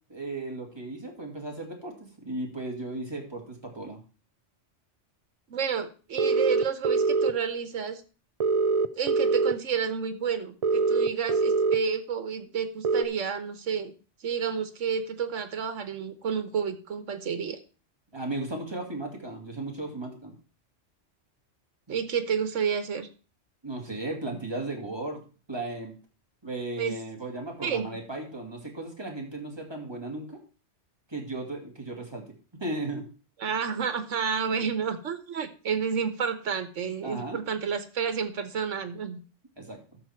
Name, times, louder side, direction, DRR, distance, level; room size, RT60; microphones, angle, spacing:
voice 1, 0.1-4.0 18.1-20.3 23.6-25.2 25.5-26.0 26.4-30.4 31.1-32.3 32.6-33.0 37.0-37.4 39.6-39.8, right 2 dB, 20° right, 0 dB, 2.5 m, -35 dB
voice 2, 5.5-8.0 9.0-13.9 14.2-17.6 21.9-23.1 26.8-27.0 27.6-28.0 33.4-39.2, right 6 dB, 85° right, 10 dB, 1.4 m, -30 dB
sound 1, 6.2-7.3 8.4-9.5 10.6-11.8 12.8-13.0, right 4 dB, 55° right, 0.4 m, -23 dB
13.5 x 6.3 x 4.5 m, 0.35 s
omnidirectional pair, 1.2 m